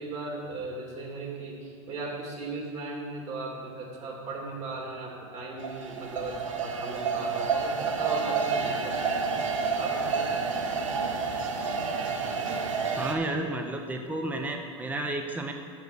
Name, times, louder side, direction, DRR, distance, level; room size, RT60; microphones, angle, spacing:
voice 1, 0.0-6.3 6.6-10.4, right 3 dB, 45° right, -1 dB, 2.5 m, -37 dB
sound 1, 5.6-13.2, right 5 dB, 90° right, 1.0 m, -29 dB
voice 2, 13.0-15.5, right 2 dB, 10° right, 4 dB, 0.7 m, -32 dB
7.3 x 6.3 x 6.4 m, 2.2 s
hypercardioid pair, 110°, 16 cm